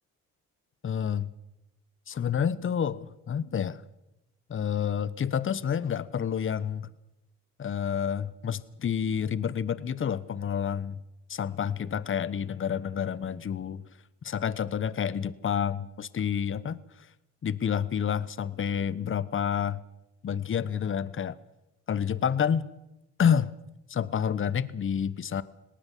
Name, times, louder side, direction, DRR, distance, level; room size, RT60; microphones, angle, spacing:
voice 1, 0.8-1.3 2.1-3.8 4.5-6.9 7.6-11.0 11.3-13.8 14.2-17.1 17.4-19.8 20.2-21.4 21.9-22.7 23.2-23.5 23.9-25.4, left 8 dB, 40° left, 17 dB, 1.1 m, -29 dB
19.0 x 18.5 x 7.6 m, 0.90 s
cardioid pair, 90°, 30 cm